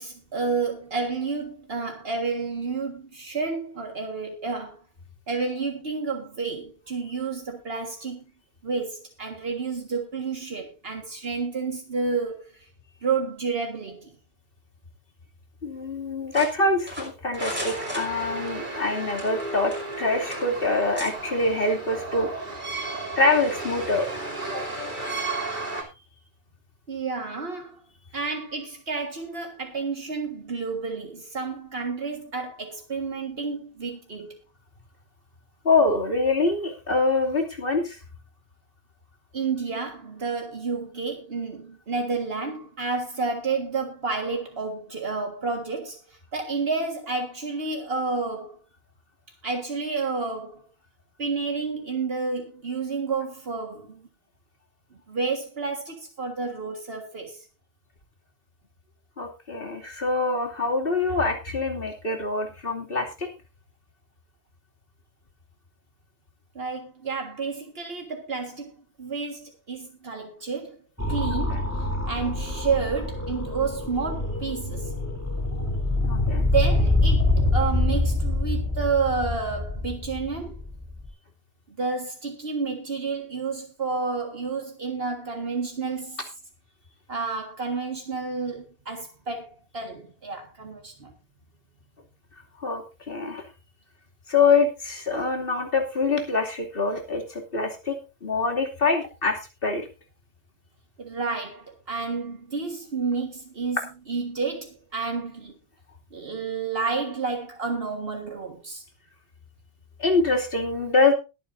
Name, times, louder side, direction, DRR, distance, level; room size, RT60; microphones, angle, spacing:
voice 1, 0.0-4.8 5.3-8.2 8.6-12.5 13.0-14.1 26.9-27.8 28.1-34.3 39.3-48.6 49.4-50.6 51.2-54.0 55.1-57.4 66.6-68.7 69.0-70.8 71.1-74.9 76.5-80.6 81.8-86.2 87.1-91.1 101.0-103.8 104.1-105.5 106.1-108.8, right 4 dB, 70° right, 1.9 m, -30 dB
voice 2, 15.6-19.7 20.0-22.3 23.2-24.1 24.5-24.6 35.6-38.0 59.2-63.3 71.5-71.6 76.0-76.5 92.6-93.4 94.3-99.9 110.0-111.1, left 3 dB, 60° left, 2.9 m, -25 dB
sound 1, 16.3-18.6 19.1-20.0 20.3-20.5 21.0-21.1, equal, 10° right, 5.5 m, -36 dB
sound 2, 17.4-25.8, right 2 dB, 50° right, 3.4 m, -33 dB
sound 3, 71.0-81.1, left 2 dB, 15° left, 3.9 m, -25 dB
21.5 x 8.9 x 2.6 m
omnidirectional pair, 1.1 m